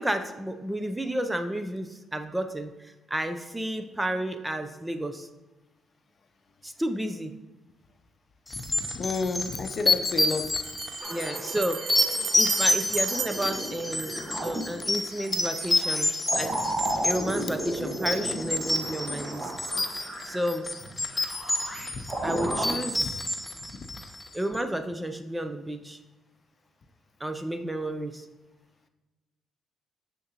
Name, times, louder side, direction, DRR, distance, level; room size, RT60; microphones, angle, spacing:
voice 1, 0.0-5.3 6.6-7.3 11.1-11.9 12.4-16.1 16.4-16.5 17.0-19.7 20.2-20.7 22.2-23.2 24.3-26.0 27.2-28.2, right 1 dB, 10° right, 8 dB, 0.5 m, -31 dB
sound 1, 8.5-24.3, left 2 dB, 15° left, 0.8 m, -28 dB
voice 2, 8.8-10.5 21.9-22.1 23.0-23.1 23.7-23.8, left 4 dB, 50° left, 8 dB, 0.6 m, -31 dB
Bell, 9.0-9.1 10.6-14.6, right 8 dB, 75° right, 0.4 m, -35 dB
sound 2, 11.0-22.8, right 1 dB, 30° right, 1.3 m, -35 dB
6.6 x 6.4 x 2.9 m, 1.1 s
cardioid pair, 90°, 0 cm